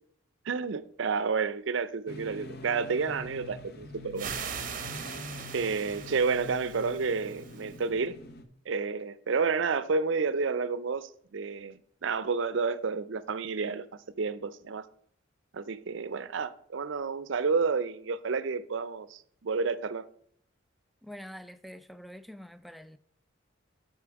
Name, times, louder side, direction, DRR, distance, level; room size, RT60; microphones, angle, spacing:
voice 1, 0.5-4.4 5.5-8.2 8.7-14.9 15.5-20.0, right 5 dB, 70° right, 0.5 m, -30 dB
sound 1, 2.1-8.4, left 2 dB, 55° left, 0.8 m, -45 dB
sound 2, 4.2-7.8, right 7 dB, 45° right, 0.8 m, -40 dB
voice 2, 21.0-23.0, equal, ahead, 0.3 m, -46 dB
8.5 x 5.7 x 4.7 m
head